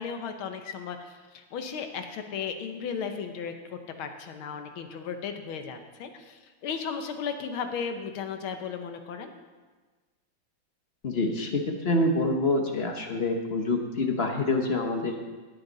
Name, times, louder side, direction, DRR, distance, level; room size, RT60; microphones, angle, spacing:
voice 1, 0.0-9.3, left 6 dB, 90° left, 6 dB, 1.9 m, -35 dB
voice 2, 11.0-15.2, left 2 dB, 45° left, 4 dB, 0.8 m, -26 dB
16.5 x 8.9 x 4.0 m, 1.3 s
omnidirectional pair, 2.2 m